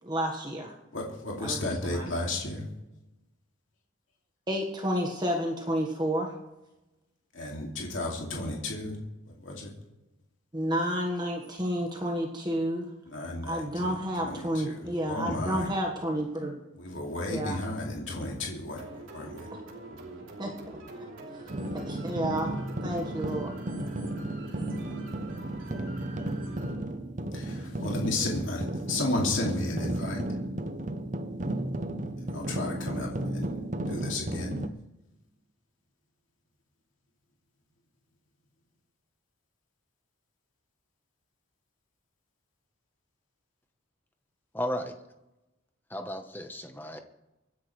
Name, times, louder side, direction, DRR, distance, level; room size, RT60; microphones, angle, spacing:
voice 1, 0.0-0.7 1.4-2.1 4.5-6.3 10.5-12.9 13.5-16.6 17.3-17.6 20.4-20.5 21.7-23.5, equal, 20° right, 1 dB, 1.4 m, -30 dB
voice 2, 0.9-2.7 7.3-9.0 9.4-9.9 13.1-15.8 16.7-18.9 19.1-19.5 27.3-30.3 32.2-33.5 33.9-34.6, left 2 dB, 70° left, -1 dB, 2.5 m, -33 dB
sound 1, 18.7-26.8, right 2 dB, 70° right, 3.2 m, -45 dB
sound 2, 21.5-34.7, right 1 dB, 35° right, 0.7 m, -34 dB
voice 3, 44.5-44.9 45.9-47.0, equal, 10° left, 6 dB, 1.0 m, -34 dB
26.0 x 10.5 x 3.3 m, 0.98 s
head